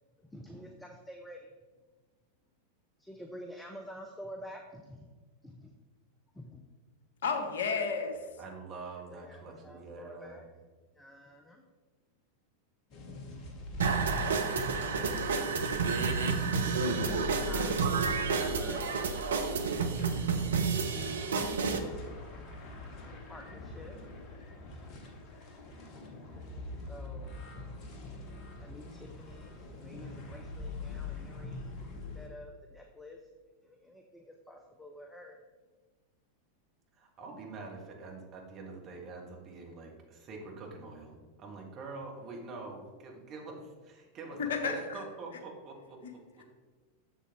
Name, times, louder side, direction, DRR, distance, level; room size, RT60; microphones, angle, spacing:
voice 1, 0.2-1.5 3.0-5.1 5.4-5.7 6.3-6.6 9.1-10.4 10.9-11.6 16.4-19.1 23.3-24.0 26.9-27.4 28.6-31.8 32.1-33.2 33.6-35.4, equal, 5° left, 3 dB, 0.6 m, -49 dB
voice 2, 7.2-8.2 44.5-45.0, left 5 dB, 60° left, 5 dB, 0.9 m, -31 dB
voice 3, 8.4-10.4 36.9-46.4, right 3 dB, 30° right, 0 dB, 1.7 m, -45 dB
sound 1, 12.9-32.3, left 3 dB, 35° left, 1.1 m, -43 dB
sound 2, 13.8-21.8, right 5 dB, 65° right, 0.7 m, -30 dB
7.4 x 6.9 x 3.6 m, 1.4 s
figure-of-eight pair, 90°, 0 cm